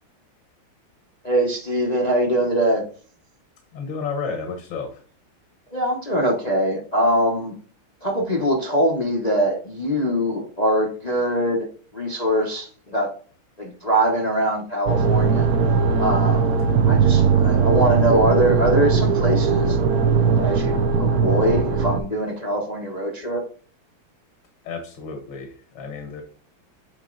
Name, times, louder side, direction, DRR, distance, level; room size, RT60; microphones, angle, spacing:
voice 1, 1.2-2.8 5.7-7.5 8.0-11.7 11.9-13.1 13.6-15.5 16.0-16.6 16.8-19.8 20.4-23.4, right 1 dB, 30° left, -1 dB, 0.7 m, -22 dB
voice 2, 3.7-5.0 24.6-26.2, left 5 dB, 70° left, 4 dB, 1.9 m, -32 dB
sound 1, 14.9-22.0, right 5 dB, 65° right, 1.0 m, -19 dB
8.1 x 4.2 x 3.8 m, 0.42 s
omnidirectional pair, 2.2 m